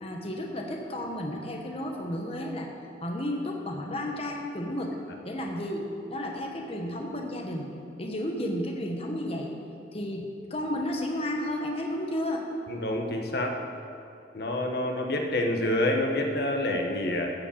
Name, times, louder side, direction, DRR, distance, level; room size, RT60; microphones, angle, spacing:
voice 1, 0.0-2.7 3.0-5.0 5.2-7.7 8.0-9.6 9.9-12.4, left 1 dB, 35° left, 1 dB, 1.1 m, -32 dB
voice 2, 12.7-13.6 14.3-17.3, left 1 dB, 60° left, 2 dB, 1.2 m, -27 dB
14.0 x 5.1 x 8.5 m, 2.6 s
head